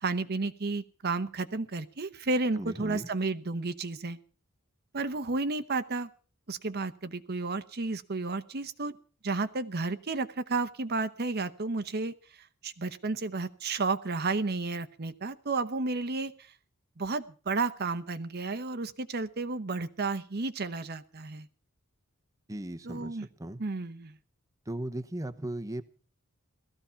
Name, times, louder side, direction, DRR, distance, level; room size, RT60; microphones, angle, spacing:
voice 1, 0.0-4.2 4.9-6.1 6.5-9.0 9.2-16.5 17.0-21.5 22.8-23.3 23.6-24.2, right 3 dB, 50° right, 11 dB, 0.9 m, -32 dB
voice 2, 2.6-3.1 22.5-23.6 24.7-25.8, right 1 dB, 15° right, 8 dB, 0.9 m, -37 dB
17.0 x 14.0 x 5.7 m, 0.41 s
head